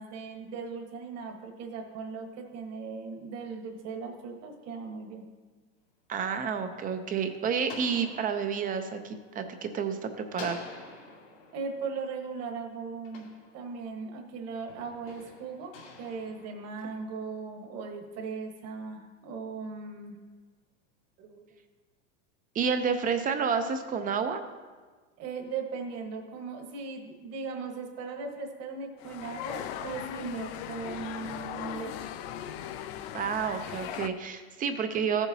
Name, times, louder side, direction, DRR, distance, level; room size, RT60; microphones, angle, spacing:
voice 1, 0.0-5.3 11.5-13.3 13.5-15.7 16.0-20.2 21.2-21.4 25.2-32.1, right 5 dB, 40° right, 3 dB, 1.4 m, -38 dB
voice 2, 6.1-10.6 22.5-24.4 33.1-35.3, right 6 dB, 20° right, 8 dB, 0.6 m, -30 dB
sound 1, 6.4-9.9 10.3-14.1 14.7-17.3, left 3 dB, 90° left, 2.5 m, -49 dB
sound 2, 29.0-34.1, left 10 dB, 55° left, 0.6 m, -38 dB
14.5 x 7.1 x 2.7 m, 1.4 s
supercardioid pair, 125°, 39 cm